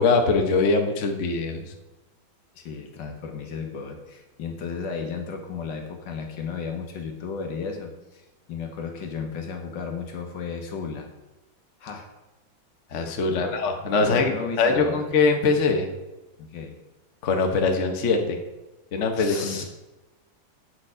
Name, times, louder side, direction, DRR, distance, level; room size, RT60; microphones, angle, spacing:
voice 1, 0.0-1.6 12.9-15.9 17.2-18.4 18.9-19.6, left 4 dB, 50° left, 3 dB, 1.0 m, -22 dB
voice 2, 2.6-8.2 8.5-11.1 11.8-12.1 12.9-13.6 14.0-15.0 16.4-16.8 19.2-19.6, left 5 dB, 65° left, 4 dB, 1.7 m, -34 dB
8.1 x 6.6 x 4.9 m, 1.1 s
omnidirectional pair, 2.2 m